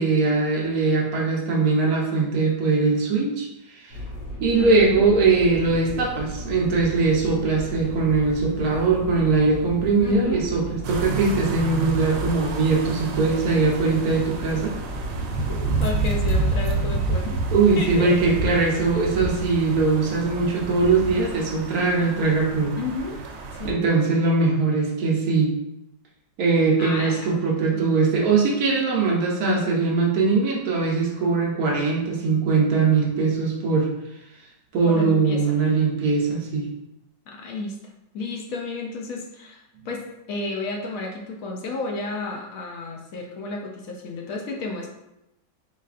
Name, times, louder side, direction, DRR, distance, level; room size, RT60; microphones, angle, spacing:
voice 1, 0.0-3.5 3.7-4.0 4.4-14.8 17.5-22.8 23.6-25.5 26.4-33.9 34.7-36.7, right 4 dB, 60° right, -2 dB, 1.1 m, -21 dB
sound 1, 3.9-16.3, left 1 dB, 90° left, 1.8 m, -36 dB
voice 2, 4.5-5.0 10.0-10.5 15.5-17.4 17.8-18.1 22.7-23.2 23.5-24.0 26.8-27.4 27.7-27.9 34.8-35.6 37.3-37.8 38.1-44.9, left 3 dB, 65° left, 1 dB, 0.8 m, -32 dB
sound 2, 10.8-23.7, right 3 dB, 90° right, 1.3 m, -29 dB
4.0 x 3.9 x 2.4 m, 0.87 s
omnidirectional pair, 2.0 m